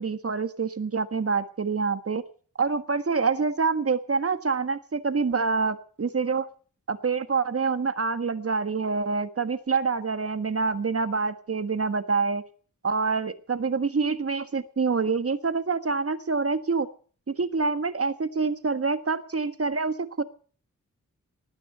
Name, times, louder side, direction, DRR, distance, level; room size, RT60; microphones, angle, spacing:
voice 1, 0.0-2.2 2.6-6.5 6.9-12.4 12.8-16.9 17.3-20.2, right 4 dB, 45° right, 11 dB, 1.6 m, -26 dB
19.5 x 9.9 x 6.8 m, 0.43 s
wide cardioid pair, 85°, 31 cm